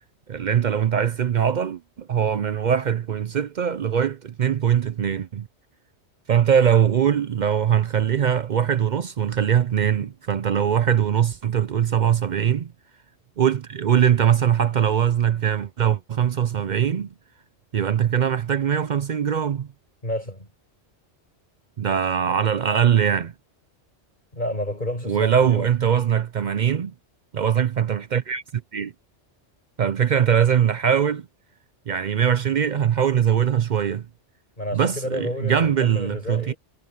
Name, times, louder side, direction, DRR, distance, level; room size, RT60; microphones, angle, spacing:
voice 1, 0.3-5.5 6.3-12.7 13.4-17.1 17.7-19.7 21.8-23.3 25.0-26.9 27.3-28.9 29.8-31.3 31.9-34.1 34.7-36.5, right 8 dB, 55° right, 0.5 m, -21 dB
voice 2, 20.0-20.5 24.3-25.7 34.6-36.6, left 1 dB, 40° left, 8.0 m, -30 dB
omnidirectional pair, 1.2 m